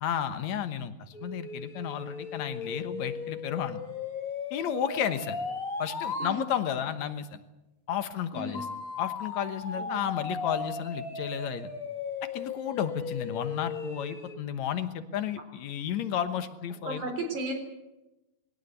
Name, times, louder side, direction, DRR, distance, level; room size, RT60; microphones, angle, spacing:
voice 1, 0.0-3.8 4.5-5.4 5.8-7.4 7.9-8.7 9.0-11.7 12.3-17.0, left 9 dB, 70° left, 10 dB, 2.4 m, -32 dB
sound 1, 1.1-6.4 8.5-14.4, left 4 dB, 35° left, 1.9 m, -37 dB
voice 2, 9.7-10.2 16.9-17.5, right 1 dB, 90° right, 5 dB, 5.4 m, -35 dB
21.5 x 17.0 x 8.2 m, 1.0 s
omnidirectional pair, 3.4 m